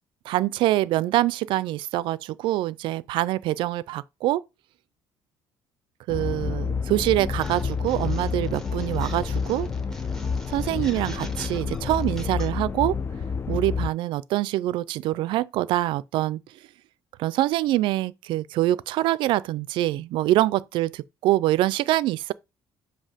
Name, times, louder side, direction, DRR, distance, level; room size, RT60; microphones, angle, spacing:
voice 1, 0.3-4.4 6.1-9.7 10.5-13.0 13.5-16.4 17.2-22.3, right 15 dB, 75° right, 0.4 m, -25 dB
sound 1, 6.1-13.9, left 5 dB, 30° left, 0.5 m, -29 dB
sound 2, 7.4-12.5, equal, 5° left, 1.3 m, -40 dB
7.4 x 2.7 x 5.0 m
cardioid pair, 120°, 9 cm